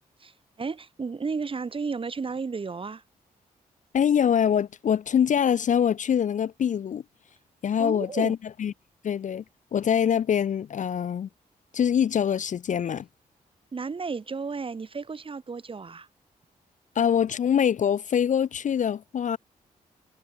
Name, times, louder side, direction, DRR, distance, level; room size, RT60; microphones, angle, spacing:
voice 1, 0.2-3.0 7.8-8.4 13.7-16.1, right 4 dB, 30° right, 0.6 m, -33 dB
voice 2, 3.9-7.0 7.6-8.7 9.0-9.4 9.7-11.3 11.7-13.1 17.0-19.4, left 8 dB, 45° left, 0.4 m, -24 dB
supercardioid pair, 45°, 18 cm